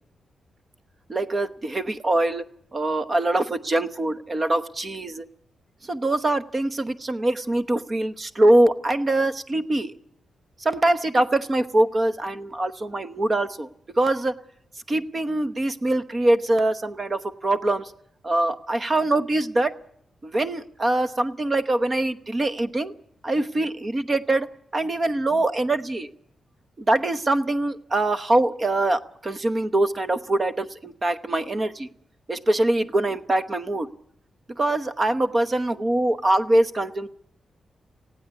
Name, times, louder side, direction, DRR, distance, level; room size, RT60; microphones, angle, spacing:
voice 1, 1.1-2.4 2.7-5.2 5.8-9.9 10.6-13.7 14.0-14.3 14.9-17.9 18.2-19.7 20.2-22.9 23.2-26.1 26.8-31.9 32.3-33.9 34.6-37.1, right 2 dB, 30° right, 10 dB, 1.0 m, -23 dB
19.5 x 15.5 x 9.4 m, 0.69 s
wide cardioid pair, 135°, 0 cm